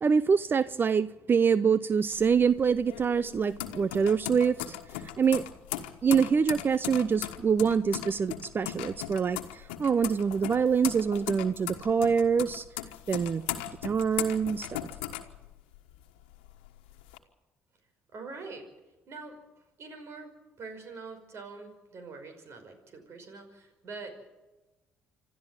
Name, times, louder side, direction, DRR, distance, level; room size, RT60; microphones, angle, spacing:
voice 1, 0.0-4.8 5.2-5.4 6.0-12.6 13.1-13.4 13.8-14.7, right 6 dB, 40° right, 0.6 m, -25 dB
sound 1, 2.1-15.9 16.3-17.2, left 13 dB, 90° left, 1.4 m, -38 dB
voice 2, 18.1-18.7 19.1-19.4 19.8-20.3 20.6-24.1, right 4 dB, 55° right, 5.5 m, -44 dB
26.5 x 12.5 x 9.0 m
hypercardioid pair, 60°, 5 cm